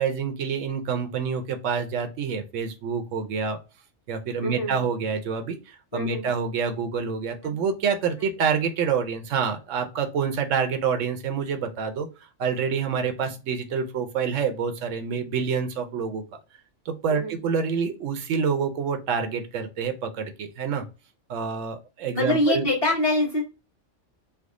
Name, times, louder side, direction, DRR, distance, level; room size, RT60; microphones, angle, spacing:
voice 1, 0.0-3.6 4.1-12.1 12.4-16.2 16.9-20.8 21.3-22.6, right 6 dB, 80° right, 7 dB, 1.0 m, -27 dB
voice 2, 4.4-4.8 5.9-6.3 7.4-7.6 17.1-17.3 22.1-23.4, left 1 dB, 25° left, -6 dB, 1.4 m, -25 dB
3.5 x 2.0 x 3.6 m, 0.30 s
omnidirectional pair, 1.3 m